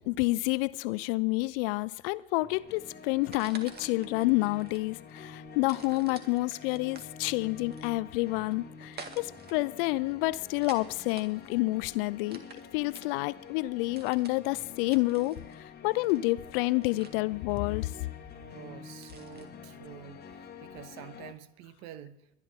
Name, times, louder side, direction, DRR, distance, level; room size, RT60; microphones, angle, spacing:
voice 1, 0.1-12.4 12.7-17.9, left 21 dB, 60° left, 0.6 m, -29 dB
sound 1, 2.4-21.3, left 5 dB, 30° left, 1.6 m, -48 dB
sound 2, 3.1-19.5, right 5 dB, 30° right, 1.9 m, -52 dB
voice 2, 18.3-22.2, right 10 dB, 55° right, 1.3 m, -48 dB
22.0 x 11.0 x 3.7 m
hypercardioid pair, 85°, 31 cm